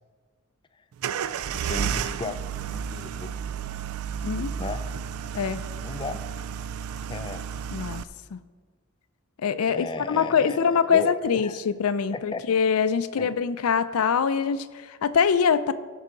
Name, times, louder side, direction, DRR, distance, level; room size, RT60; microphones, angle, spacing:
sound 1, 1.0-8.0, right 7 dB, 80° right, 0.3 m, -32 dB
voice 1, 1.6-3.4 4.6-4.8 5.8-6.2 7.1-7.4 9.7-10.6 10.9-11.5 12.1-12.4 13.1-13.3, left 3 dB, 20° left, 9 dB, 0.4 m, -35 dB
voice 2, 7.7-8.0 8.3-8.4 9.4-15.7, left 6 dB, 85° left, 13 dB, 0.4 m, -24 dB
15.0 x 5.6 x 3.8 m, 1.5 s
head